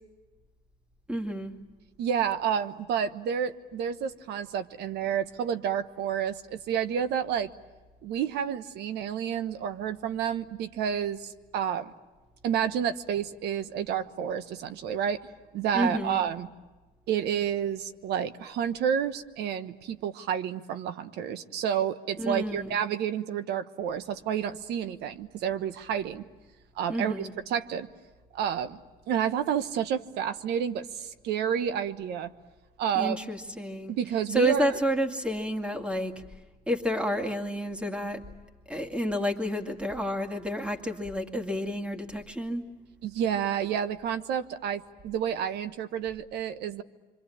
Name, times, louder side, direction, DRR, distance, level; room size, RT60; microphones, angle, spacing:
voice 1, 1.1-1.5 15.7-16.2 22.2-22.7 26.9-27.3 33.0-33.9 34.3-36.1 36.7-38.2 38.7-42.6, equal, 5° right, 5 dB, 2.3 m, -29 dB
voice 2, 2.0-7.5 8.0-11.9 12.4-15.2 15.5-16.5 17.1-26.2 26.8-27.9 28.3-28.8 29.1-32.3 32.8-33.2 33.9-34.6 43.0-46.8, right 8 dB, 80° right, 11 dB, 1.2 m, -30 dB
26.5 x 25.0 x 8.7 m, 1.2 s
cardioid pair, 110°, 17 cm